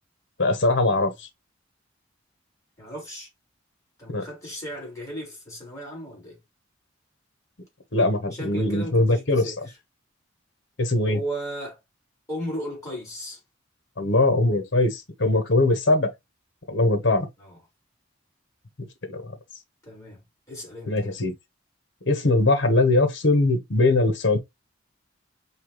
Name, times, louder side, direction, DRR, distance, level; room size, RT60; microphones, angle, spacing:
voice 1, 0.4-1.1 4.1-4.2 7.9-9.5 10.8-11.2 14.0-16.1 16.7-17.3 19.1-19.3 20.9-21.3 22.1-24.4, left 2 dB, 65° left, 1.2 m, -21 dB
voice 2, 2.8-3.3 4.0-6.4 8.3-9.6 11.1-11.8 12.3-13.4 17.4-17.6 19.8-20.2 20.5-21.0, equal, 15° left, 3.3 m, -35 dB
5.7 x 2.9 x 3.1 m
head